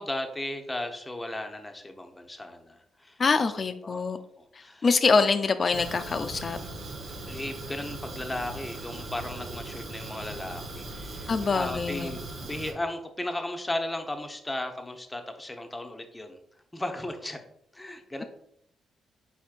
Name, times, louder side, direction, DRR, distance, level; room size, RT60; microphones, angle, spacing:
voice 1, 0.0-3.2 3.8-4.1 4.4-4.9 7.3-16.4 16.7-17.4 17.7-18.2, left 1 dB, 15° left, 5 dB, 0.8 m, -35 dB
voice 2, 3.2-4.2 4.8-6.6 11.3-12.2, left 4 dB, 45° left, 10 dB, 0.4 m, -24 dB
Fire, 5.7-12.7, right 2 dB, 65° right, 0.8 m, -39 dB
4.4 x 4.2 x 2.4 m, 0.70 s
supercardioid pair, 55°, 0 cm